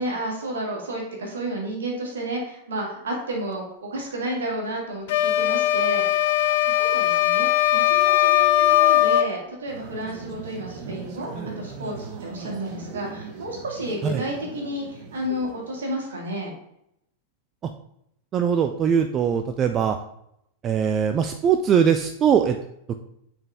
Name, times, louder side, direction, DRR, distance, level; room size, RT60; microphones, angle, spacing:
voice 1, 0.0-6.2 6.6-11.3 11.6-16.5, right 1 dB, 65° right, -1 dB, 2.2 m, -31 dB
sound 1, 5.1-9.3, left 13 dB, 55° left, 0.4 m, -19 dB
sound 2, 9.7-16.0, right 4 dB, 45° right, 1.0 m, -38 dB
voice 2, 18.3-20.0 20.6-22.6, right 7 dB, 30° right, 7 dB, 0.4 m, -21 dB
8.6 x 4.4 x 3.4 m, 0.77 s
figure-of-eight pair, 90°, 0 cm